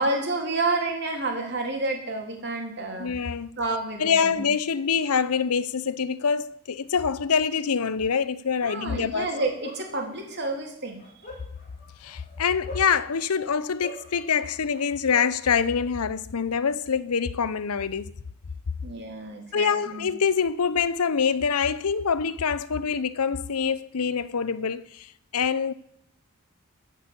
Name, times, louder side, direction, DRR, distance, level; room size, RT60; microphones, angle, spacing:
voice 1, 0.0-3.1 3.6-4.5 8.6-11.0 18.8-20.1, right 2 dB, 50° right, 3.3 m, -29 dB
voice 2, 3.0-3.5 4.0-9.3 12.0-18.1 19.5-25.7, left 6 dB, 90° left, 0.7 m, -25 dB
Bark, 9.3-10.4 11.0-13.3 13.8-15.3, left 1 dB, 35° left, 3.3 m, -41 dB
14.0 x 6.3 x 8.4 m
head